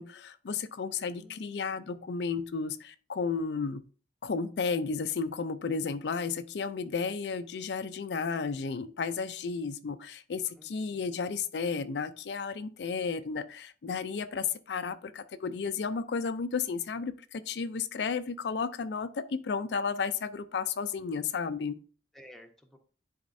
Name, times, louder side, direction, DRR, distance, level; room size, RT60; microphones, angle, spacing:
voice 1, 0.0-3.8 4.2-21.8, left 5 dB, 75° left, 11 dB, 0.4 m, -33 dB
voice 2, 0.9-1.8 10.6-11.0 22.1-22.8, equal, ahead, 3 dB, 0.8 m, -54 dB
10.5 x 4.3 x 2.6 m, 0.39 s
head